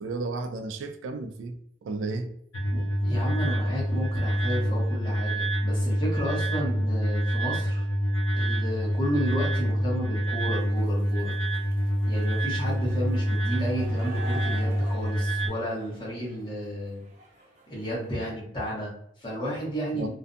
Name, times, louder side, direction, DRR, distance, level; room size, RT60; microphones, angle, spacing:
voice 1, 0.0-2.3 19.9-20.1, right 3 dB, 85° right, 0.3 m, -33 dB
sound 1, 2.5-15.5, equal, 90° left, 0.5 m, -26 dB
voice 2, 2.7-7.8 8.3-11.3 12.1-17.0 17.7-20.1, equal, 25° left, 1.0 m, -32 dB
sound 2, 10.6-18.2, left 1 dB, 35° right, 0.7 m, -48 dB
2.5 x 2.2 x 2.5 m
head